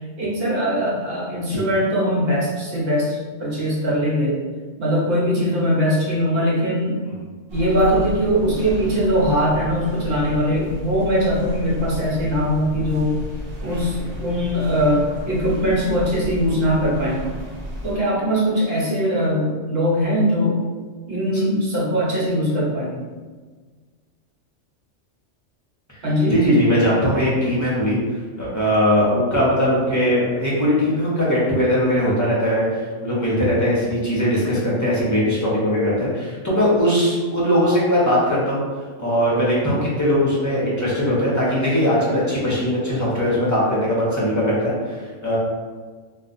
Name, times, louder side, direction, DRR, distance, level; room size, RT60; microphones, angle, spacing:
voice 1, 0.2-4.4 4.8-7.0 7.5-13.2 13.6-17.2 17.8-20.6 21.1-23.0 26.0-26.4, equal, 55° right, -5 dB, 1.0 m, -21 dB
sound 1, 7.5-18.0, left 1 dB, 35° right, 0.7 m, -33 dB
voice 2, 26.3-28.0 28.4-38.6 39.0-45.4, equal, 15° left, -7 dB, 0.7 m, -20 dB
2.4 x 2.3 x 3.8 m, 1.4 s
omnidirectional pair, 1.3 m